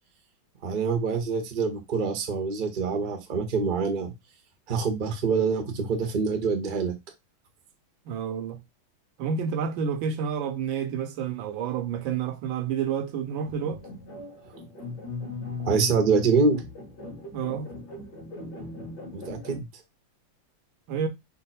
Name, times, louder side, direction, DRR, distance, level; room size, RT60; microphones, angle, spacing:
voice 1, 0.6-4.1 4.7-6.9 15.6-16.6 19.1-19.6, right 4 dB, 50° right, 0.6 m, -25 dB
voice 2, 8.1-8.6 9.2-13.8 17.3-17.7 20.9-21.1, right 7 dB, 75° right, 1.3 m, -29 dB
sound 1, 13.4-19.6, left 3 dB, 60° left, 2.0 m, -39 dB
5.3 x 2.0 x 4.1 m
omnidirectional pair, 2.3 m